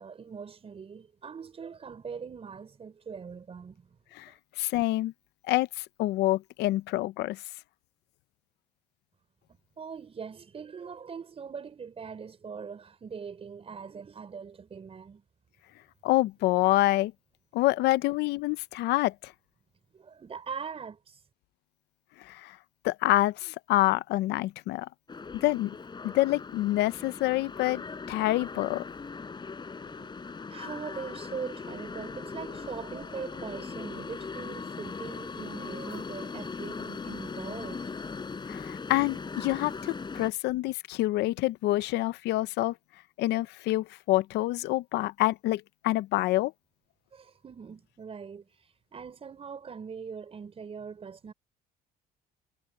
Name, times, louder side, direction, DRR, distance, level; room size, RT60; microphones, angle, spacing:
voice 1, 0.0-3.9 9.8-15.2 19.9-21.2 29.8-30.2 30.5-37.8 47.1-48.5 48.9-51.3, right 6 dB, 35° right, 5.3 m, -41 dB
voice 2, 4.6-5.1 5.5-7.4 16.0-17.1 17.5-19.3 22.2-22.6 22.8-24.9 25.3-25.7 26.0-27.8 28.1-28.8 38.5-42.7 43.2-46.5, left 17 dB, 80° left, 0.6 m, -27 dB
sound 1, 25.1-40.3, left 4 dB, 25° left, 4.3 m, -39 dB
cardioid pair, 110°, 17 cm